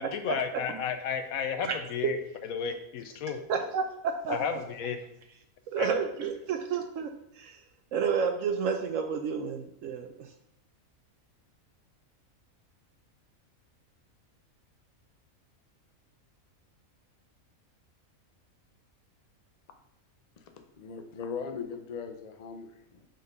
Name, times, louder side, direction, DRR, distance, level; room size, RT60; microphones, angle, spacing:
voice 1, 0.0-2.2 2.4-3.4 4.3-5.0 5.8-6.1, left 7 dB, 85° left, 8 dB, 1.2 m, -33 dB
voice 2, 3.5-4.4 5.7-7.1 7.4-7.6 7.9-10.3, right 6 dB, 70° right, 6 dB, 1.0 m, -30 dB
voice 3, 20.4-23.1, left 6 dB, 40° left, 6 dB, 0.7 m, -39 dB
6.4 x 4.2 x 5.3 m, 0.79 s
omnidirectional pair, 1.4 m